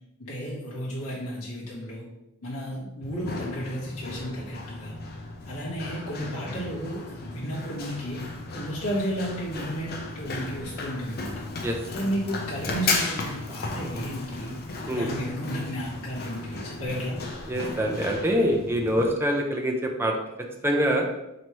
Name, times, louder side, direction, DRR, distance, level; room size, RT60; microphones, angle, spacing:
voice 1, 0.2-2.1 2.4-5.0 5.5-11.4 11.9-17.2, equal, 70° left, -7 dB, 1.1 m, -33 dB
Run, 3.0-19.1, left 3 dB, 45° left, 0.5 m, -35 dB
voice 2, 17.5-20.1 20.6-21.0, equal, 10° right, 1 dB, 0.4 m, -24 dB
3.0 x 2.8 x 4.5 m, 0.92 s
head